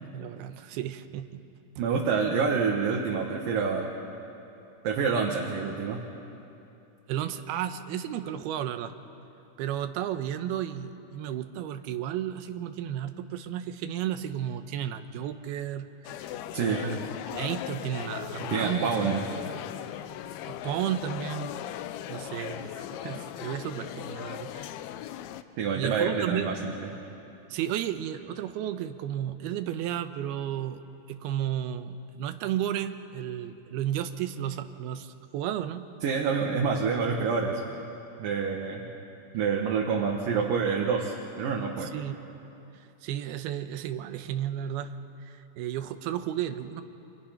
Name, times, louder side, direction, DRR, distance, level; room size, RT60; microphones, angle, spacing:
voice 1, 0.0-1.4 1.8-2.2 7.1-8.9 9.6-17.0 17.3-19.2 20.5-21.5 22.1-24.7 25.7-26.6 27.5-30.8 31.1-35.9 41.8-42.3 42.7-44.9 45.2-46.8, right 10 dB, 85° right, 9 dB, 2.9 m, -33 dB
voice 2, 1.8-3.9 4.8-6.0 16.5-16.8 18.4-19.2 25.6-26.9 36.0-37.6 38.2-38.9 39.3-41.9, right 5 dB, 70° right, 0 dB, 3.0 m, -27 dB
sound 1, 16.0-25.4, left 11 dB, 85° left, 2.7 m, -38 dB
29.5 x 26.0 x 5.9 m, 2.8 s
omnidirectional pair, 4.4 m